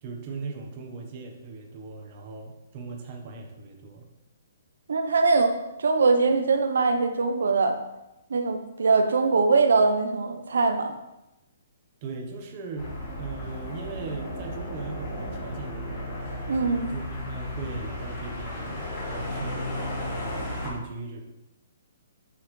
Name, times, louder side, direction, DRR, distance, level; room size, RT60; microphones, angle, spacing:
voice 1, 0.0-4.0 12.0-12.9 13.2-16.1 16.9-21.2, right 4 dB, 25° right, 1 dB, 1.2 m, -39 dB
voice 2, 4.9-7.8 8.3-10.9 16.5-16.9, right 4 dB, 80° right, 6 dB, 0.9 m, -22 dB
sound 1, 12.8-20.7, left 1 dB, 25° left, 2.9 m, -34 dB
10.5 x 5.6 x 3.3 m, 0.93 s
hypercardioid pair, 175°, 0 cm